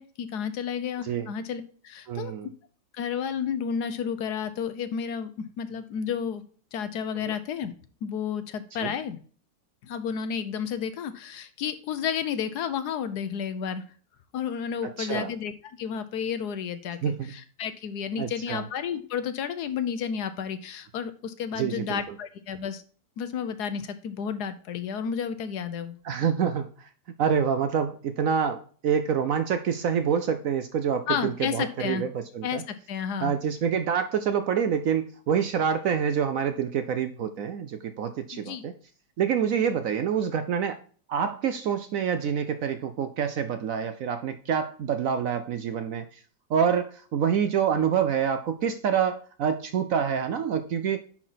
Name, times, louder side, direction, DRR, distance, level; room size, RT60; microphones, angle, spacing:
voice 1, 0.0-2.3 2.9-5.3 5.6-6.4 6.7-7.7 8.0-9.2 9.8-13.8 14.3-15.5 15.8-22.8 23.2-26.0 31.1-32.0 32.4-33.3 38.3-38.6, left 7 dB, 65° left, 11 dB, 1.2 m, -31 dB
voice 2, 2.1-2.5 7.3-7.4 8.8-8.9 15.0-15.3 17.0-17.3 18.2-18.6 21.6-22.0 26.0-26.9 27.2-32.6 33.2-38.8 39.2-40.8 41.1-46.2 46.5-51.0, right 7 dB, 70° right, 10 dB, 0.8 m, -27 dB
9.9 x 4.3 x 3.9 m, 0.43 s
omnidirectional pair, 2.0 m